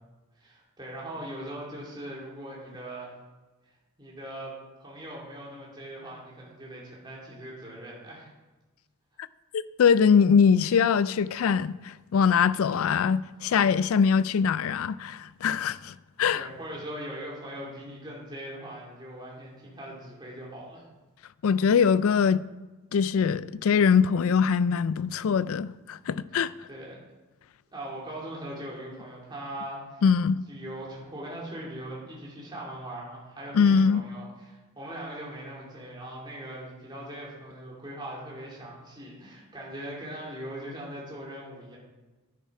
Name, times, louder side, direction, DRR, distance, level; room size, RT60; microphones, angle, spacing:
voice 1, 0.4-3.1 4.0-4.5 4.8-8.3 16.3-20.9 26.7-27.0 27.7-30.0 30.5-41.8, right 1 dB, 20° right, 2.6 m, -40 dB
voice 2, 9.5-16.5 21.4-22.4 22.9-26.5 30.0-30.4 33.5-34.0, left 6 dB, 75° left, 0.3 m, -22 dB
10.0 x 8.6 x 4.8 m
head